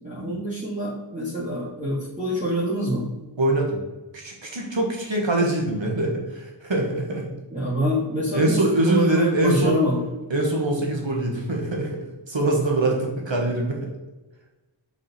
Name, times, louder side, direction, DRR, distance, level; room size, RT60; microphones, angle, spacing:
voice 1, 0.0-3.1 7.5-10.0, equal, 15° right, -9 dB, 2.1 m, -26 dB
voice 2, 3.4-3.8 4.1-7.3 8.3-9.8 10.3-12.0 12.3-13.9, right 2 dB, 65° right, 0 dB, 1.7 m, -23 dB
5.0 x 4.9 x 4.3 m, 1.1 s
wide cardioid pair, 40°, 49 cm